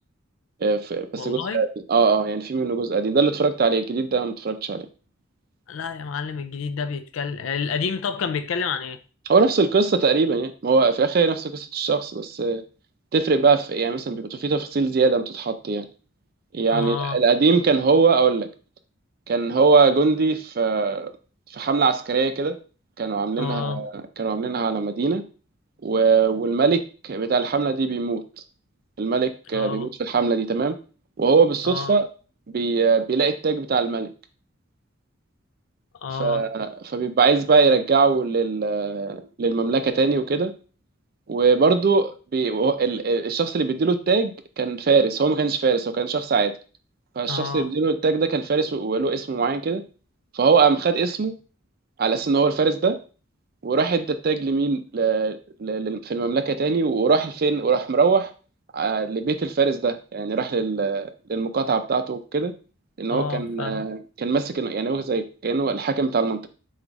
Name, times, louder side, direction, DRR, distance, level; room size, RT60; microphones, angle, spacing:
voice 1, 0.6-4.9 9.3-12.6 13.1-15.9 16.5-18.5 19.3-21.1 21.5-22.6 23.0-25.2 25.8-28.2 29.0-30.8 31.2-32.0 32.5-34.1 36.2-40.5 41.3-46.5 47.2-49.8 50.3-51.3 52.0-53.0 53.6-58.3 58.7-62.5 63.0-66.5, right 4 dB, 50° right, 0.4 m, -22 dB
voice 2, 1.2-1.6 5.7-9.0 16.7-17.2 23.4-23.8 29.5-29.9 31.6-31.9 36.0-36.4 47.2-47.7 63.1-63.9, left 5 dB, 90° left, 0.4 m, -29 dB
4.6 x 2.4 x 3.9 m
head